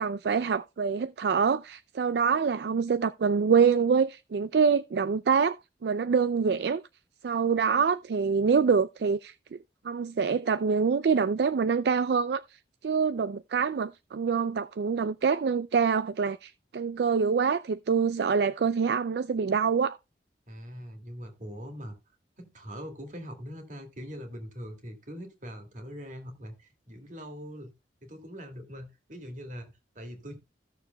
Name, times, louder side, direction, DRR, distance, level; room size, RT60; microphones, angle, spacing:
voice 1, 0.0-5.6 5.8-6.8 7.2-9.6 9.8-20.0, right 6 dB, 65° right, 0.4 m, -25 dB
voice 2, 20.5-22.0 22.4-27.7 28.0-30.4, equal, 45° right, 2.2 m, -42 dB
15.5 x 6.6 x 2.2 m
head